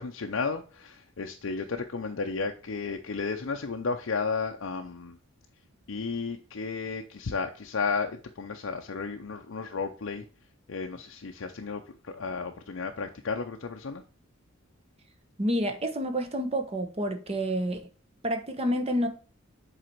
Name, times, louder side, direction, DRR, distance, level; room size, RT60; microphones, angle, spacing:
voice 1, 0.0-5.2 5.9-10.2 10.7-14.0, left 4 dB, 70° left, 0.6 m, -33 dB
voice 2, 15.4-17.8 18.2-19.1, equal, 30° right, 1.0 m, -28 dB
7.6 x 4.1 x 4.5 m
head